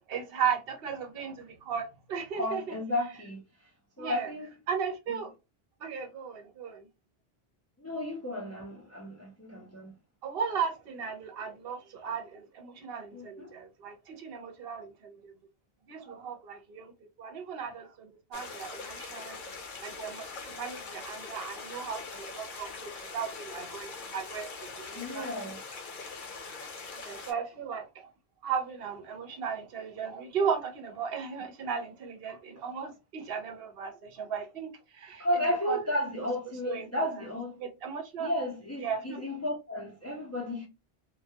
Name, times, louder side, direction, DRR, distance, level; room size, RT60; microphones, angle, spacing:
voice 1, 0.1-2.7 4.0-4.3 4.7-5.3 5.8-6.8 10.2-15.3 15.9-16.9 17.2-19.4 19.8-25.3 27.0-28.1 28.4-35.3 35.7-35.8 36.2-36.3 36.7-36.9 37.6-38.3 38.8-39.2, right 6 dB, 70° right, 0.8 m, -36 dB
voice 2, 2.3-3.4 4.0-4.5 5.1-5.2 7.8-9.9 13.1-13.5 24.9-25.6 35.2-37.5 38.2-40.7, left 1 dB, 25° left, 0.3 m, -33 dB
sound 1, 18.3-27.3, left 4 dB, 60° left, 0.8 m, -42 dB
2.2 x 2.1 x 2.7 m
omnidirectional pair, 1.0 m